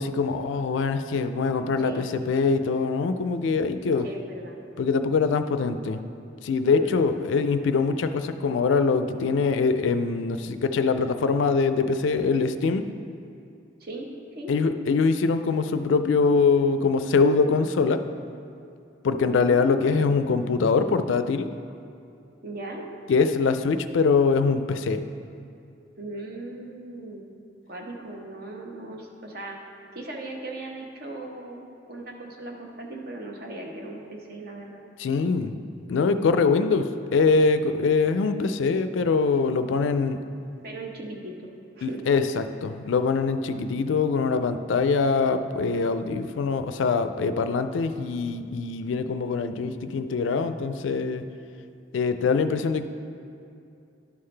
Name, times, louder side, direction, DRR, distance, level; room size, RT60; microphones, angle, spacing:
voice 1, 0.0-4.0 4.8-6.0 6.4-12.8 14.5-18.0 19.0-21.5 23.1-25.0 35.0-35.5 35.9-40.2 41.8-51.3 51.9-52.9, left 4 dB, 75° left, 10 dB, 0.4 m, -23 dB
voice 2, 1.8-2.1 4.0-4.6 6.7-7.1 13.8-14.5 19.2-20.2 22.4-22.9 26.0-27.2 27.7-29.6 29.9-34.8 40.6-41.5 41.8-42.0, right 2 dB, 50° right, 1 dB, 0.9 m, -38 dB
11.0 x 5.7 x 3.3 m, 2.6 s
head